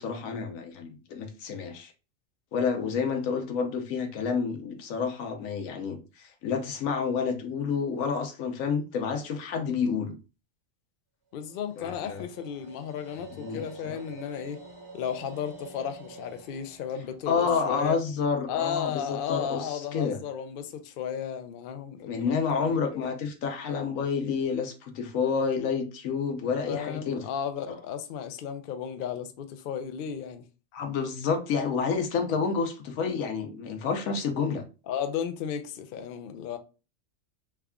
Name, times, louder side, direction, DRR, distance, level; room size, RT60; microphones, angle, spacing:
voice 1, 0.0-1.9 2.5-10.2 11.8-12.2 13.3-14.0 17.3-20.2 22.0-27.2 27.7-27.8 30.7-34.6, left 5 dB, 90° left, 1.1 m, -29 dB
voice 2, 11.3-14.6 14.9-18.0 18.5-23.1 26.7-30.4 34.9-36.6, left 8 dB, 65° left, 0.5 m, -34 dB
sound 1, 11.4-18.6, right 3 dB, 50° right, 1.2 m, -48 dB
3.4 x 2.2 x 3.5 m
omnidirectional pair, 1.4 m